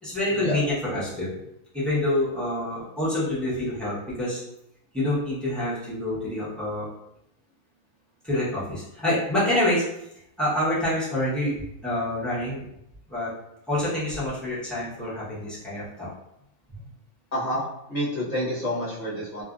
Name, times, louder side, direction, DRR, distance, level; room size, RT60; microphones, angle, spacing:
voice 1, 0.0-1.3 1.7-4.4 4.9-6.9 8.2-9.8 10.4-12.6 13.1-13.3 13.7-16.1 16.7-16.8, left 1 dB, ahead, -9 dB, 0.7 m, -27 dB
voice 2, 17.3-17.6 17.9-19.4, left 1 dB, 35° left, -8 dB, 0.8 m, -28 dB
2.7 x 2.5 x 2.4 m, 0.82 s
omnidirectional pair, 1.5 m